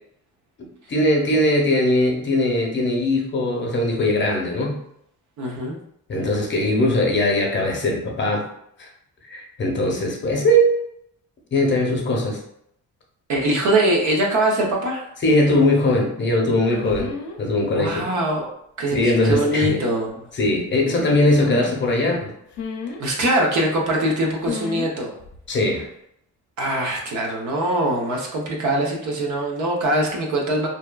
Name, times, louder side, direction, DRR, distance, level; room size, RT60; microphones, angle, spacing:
voice 1, 0.9-4.8 6.1-8.4 8.8-8.9 9.3-10.8 11.5-12.4 15.2-18.0 18.9-19.8 20.4-22.3 25.5-25.9, left 1 dB, 40° left, 0 dB, 0.7 m, -20 dB
voice 2, 5.4-5.8 13.3-15.1 17.7-18.5 18.8-20.2 23.0-25.1 26.6-30.7, right 1 dB, 70° right, 0 dB, 0.7 m, -22 dB
sound 1, 16.7-17.4 19.1-19.6 21.2-21.8 22.5-23.0 24.4-24.9 25.2-25.5, left 4 dB, 75° left, 0.5 m, -32 dB
2.7 x 2.2 x 2.2 m, 0.73 s
cardioid pair, 90°, 30 cm